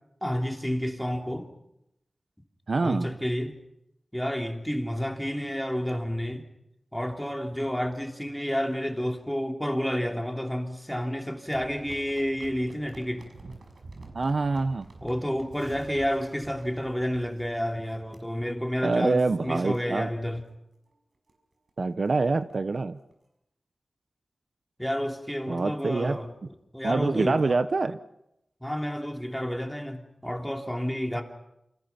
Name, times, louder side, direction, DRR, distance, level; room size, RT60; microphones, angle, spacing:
voice 1, 0.2-1.5 2.8-3.6 4.1-6.5 6.9-13.3 15.0-20.4 24.8-26.3 26.7-27.6 28.6-31.2, equal, 5° left, 3 dB, 3.2 m, -30 dB
voice 2, 2.7-3.1 14.1-14.9 18.8-20.1 21.8-23.0 25.5-26.2 26.8-28.0 31.1-31.2, right 3 dB, 55° right, 11 dB, 0.9 m, -25 dB
sound 1, 11.5-17.8 18.1-18.2 18.7-19.0 19.4-19.5 19.7-19.8 20.3-20.5 20.9-21.0 21.3-21.4 21.7-22.5 23.1-23.2, right 3 dB, 75° right, 6.1 m, -48 dB
29.0 x 27.0 x 5.9 m, 0.82 s
wide cardioid pair, 105°, 0 cm